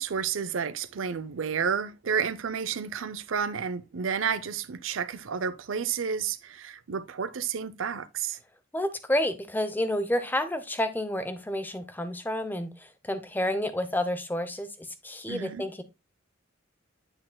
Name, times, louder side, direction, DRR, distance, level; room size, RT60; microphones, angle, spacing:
voice 1, 0.0-8.4 15.3-15.6, right 6 dB, 90° right, 0.6 m, -31 dB
voice 2, 8.7-15.8, left 1 dB, 10° left, 0.6 m, -30 dB
7.9 x 6.5 x 2.2 m
head